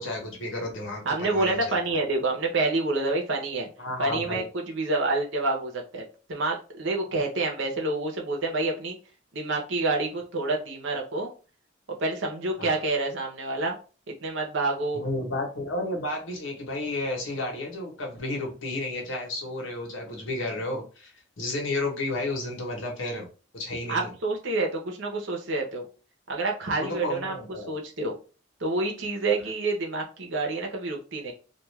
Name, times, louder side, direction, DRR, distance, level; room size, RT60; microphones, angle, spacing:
voice 1, 0.0-2.0 3.8-4.4 7.1-7.2 12.6-12.8 14.9-23.3 23.5-24.1 26.8-27.7, left 2 dB, 80° left, 1 dB, 1.0 m, -32 dB
voice 2, 1.0-3.7 4.0-6.0 6.3-9.0 9.3-11.3 12.0-13.8 14.2-15.0 23.9-25.8 26.3-27.4 27.7-28.1 28.6-31.3, right 2 dB, 75° right, 1 dB, 0.8 m, -28 dB
2.4 x 2.3 x 3.2 m, 0.36 s
head